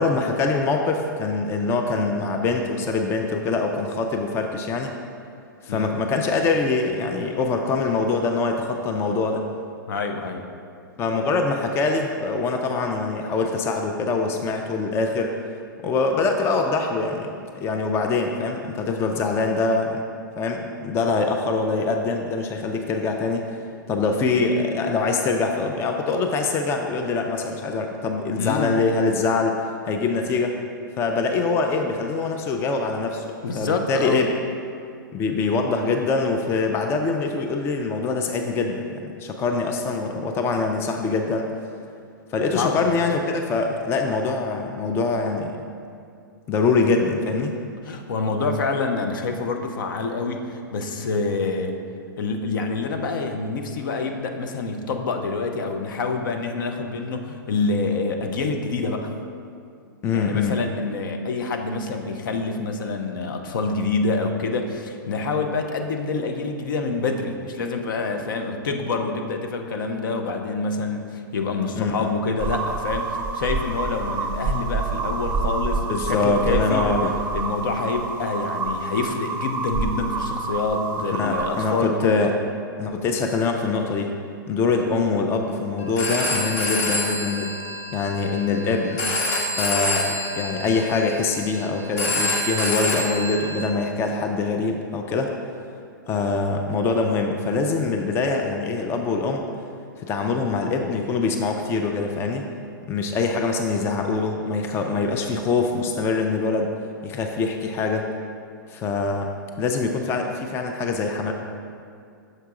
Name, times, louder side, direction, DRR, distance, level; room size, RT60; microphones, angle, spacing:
voice 1, 0.0-4.9 5.6-9.4 11.0-15.3 15.8-20.0 20.4-23.6 23.9-29.5 29.8-30.6 31.0-34.3 35.1-41.5 42.3-45.6 46.5-47.5 60.0-60.6 71.8-72.1 75.9-77.1 81.2-82.3 82.8-84.1 84.5-87.5 87.9-89.0 89.6-95.3 96.1-99.4 100.0-102.5 102.9-106.7 107.0-108.1 108.7-109.3 109.6-111.3, left 4 dB, 20° left, 4 dB, 0.4 m, -24 dB
voice 2, 9.9-10.5 28.4-28.8 33.4-34.2 42.5-42.9 47.8-51.8 52.2-59.1 60.1-76.9 77.3-82.2, left 3 dB, 65° left, 4 dB, 0.6 m, -27 dB
sound 1, 72.4-81.8, right 4 dB, 20° right, 1.1 m, -28 dB
Telephone, 85.8-93.6, left 1 dB, 50° left, 1.3 m, -27 dB
6.6 x 4.6 x 3.6 m, 2.4 s
hypercardioid pair, 115°, 11 cm